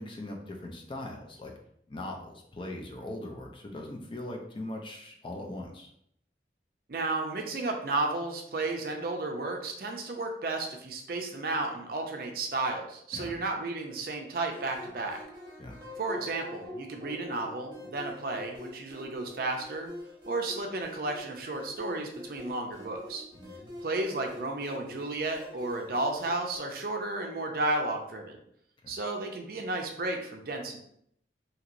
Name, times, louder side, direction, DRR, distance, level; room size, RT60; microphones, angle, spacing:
voice 1, 0.0-1.5 1.9-5.9 13.1-13.4 15.6-15.8 23.3-23.8, left 1 dB, 30° left, 1 dB, 0.4 m, -40 dB
voice 2, 6.9-15.2 16.0-19.9 20.3-23.3 23.8-28.4 28.9-30.8, right 2 dB, 55° right, 3 dB, 0.5 m, -33 dB
sound 1, 14.5-26.6, left 1 dB, 30° right, 1.0 m, -45 dB
2.9 x 2.8 x 2.5 m, 0.71 s
head